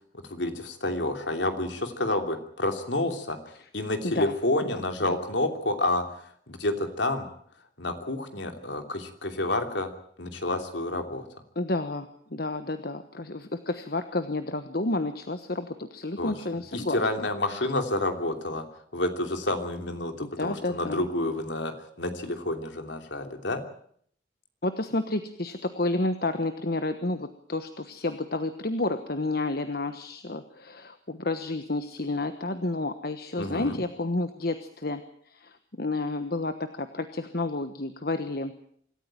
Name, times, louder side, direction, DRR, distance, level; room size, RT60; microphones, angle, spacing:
voice 1, 0.2-7.3 7.8-9.9 10.2-11.3 16.2-16.3 16.7-18.6 18.9-23.6 33.4-33.8, left 2 dB, 70° left, 6 dB, 3.1 m, -29 dB
voice 2, 11.5-17.3 20.2-21.0 24.6-35.0 35.3-38.5, left 2 dB, 50° left, 9 dB, 1.2 m, -30 dB
25.5 x 14.0 x 9.1 m, 0.64 s
head